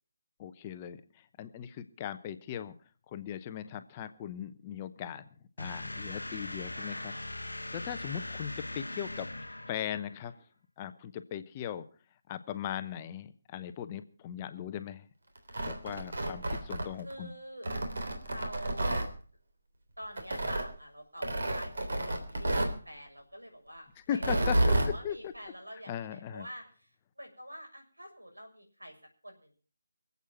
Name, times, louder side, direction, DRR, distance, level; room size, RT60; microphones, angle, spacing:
voice 1, 0.4-2.8 3.1-5.3 5.6-7.1 7.5-9.3 9.7-10.4 10.8-11.8 12.3-15.1 15.7-17.3 24.1-25.3 25.9-26.5, left 9 dB, 20° left, 10 dB, 0.8 m, -38 dB
sound 1, 5.6-10.3, left 2 dB, 75° left, 1.0 m, -40 dB
voice 2, 6.7-7.3 8.1-8.3 17.0-17.8 18.3-19.1 20.0-26.6 27.2-28.9 29.2-29.4, equal, 85° right, 4 dB, 6.3 m, -46 dB
Tearing, 15.4-17.1 17.6-19.1 20.2-20.7 21.2-22.8 24.1-24.9, right 1 dB, 55° right, 3.4 m, -30 dB
25.0 x 8.3 x 5.8 m, 0.40 s
figure-of-eight pair, 150°, 0 cm